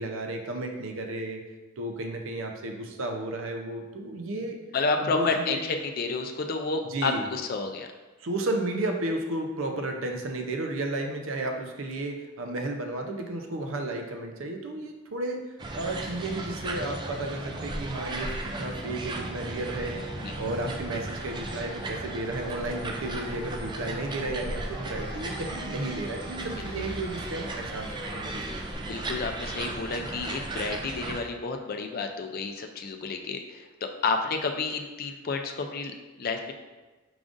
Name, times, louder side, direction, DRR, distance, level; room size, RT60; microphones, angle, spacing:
voice 1, 0.0-1.4 1.8-4.6 5.0-5.6 6.9-7.3 8.2-15.4 15.7-20.0 20.4-28.4, right 2 dB, 70° right, 3 dB, 0.6 m, -33 dB
voice 2, 4.7-7.9 20.2-20.3 26.6-26.7 28.8-36.5, left 4 dB, 45° left, 4 dB, 0.4 m, -30 dB
sound 1, 15.6-31.2, right 2 dB, 20° right, 0.4 m, -36 dB
sound 2, 18.3-29.3, left 1 dB, 50° right, 1.2 m, -51 dB
sound 3, 22.5-28.7, left 1 dB, 25° left, 0.9 m, -46 dB
5.0 x 3.7 x 2.5 m, 1.2 s
head